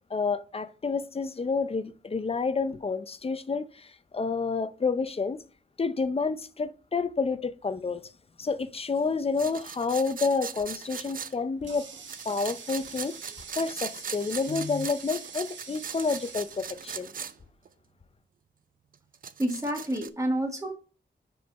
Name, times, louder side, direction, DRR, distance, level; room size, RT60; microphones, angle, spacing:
voice 1, 0.1-5.4 5.8-8.0 8.4-11.9 12.3-13.2 13.6-17.1, left 4 dB, 30° left, 0.5 m, -29 dB
sound 1, 9.4-11.3 12.1-17.3 17.6-17.7 18.9-20.1, right 7 dB, 50° right, 0.4 m, -39 dB
Water tap faucet, 11.0-17.5, right 6 dB, 90° right, 1.0 m, -46 dB
voice 2, 19.4-20.7, right 1 dB, 15° right, 1.2 m, -29 dB
5.1 x 4.7 x 4.6 m
wide cardioid pair, 120°, 19 cm